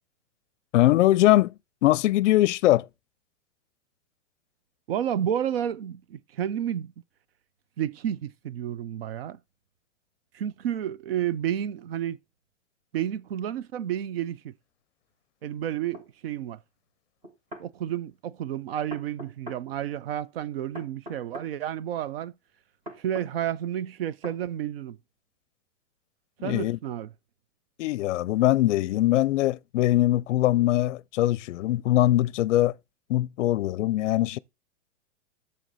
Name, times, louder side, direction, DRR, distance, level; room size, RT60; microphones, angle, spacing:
voice 1, 0.7-1.5 1.8-2.9 26.4-26.8 27.8-32.7 33.1-34.4, left 15 dB, 70° left, 0.5 m, -22 dB
voice 2, 4.9-6.9 7.8-9.4 10.3-12.2 12.9-14.5 15.4-16.6 17.6-22.3 23.0-25.0 26.4-27.1, right 10 dB, 50° right, 0.5 m, -31 dB
sound 1, 15.9-16.1 17.2-17.7 18.9-19.6 20.7-21.5 22.9-23.3 24.2-24.4, equal, 15° right, 0.7 m, -41 dB
9.2 x 6.9 x 4.0 m
supercardioid pair, 175°, 37 cm